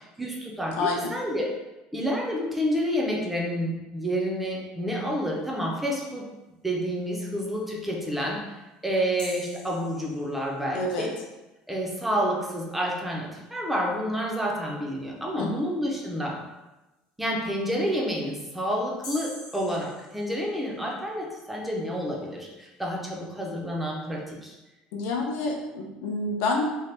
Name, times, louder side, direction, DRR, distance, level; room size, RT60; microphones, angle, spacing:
voice 1, 0.0-1.5 1.9-6.3 6.6-8.5 8.8-11.1 11.7-16.4 17.2-24.5, equal, 5° right, -2 dB, 0.4 m, -29 dB
voice 2, 0.8-1.1 10.7-11.1 15.4-15.5 24.9-26.6, left 3 dB, 70° left, 1 dB, 0.6 m, -28 dB
sound 1, 9.2-10.7 19.0-20.8, left 2 dB, 45° left, 0.9 m, -44 dB
2.7 x 2.1 x 3.2 m, 1.0 s
cardioid pair, 170°, 3 cm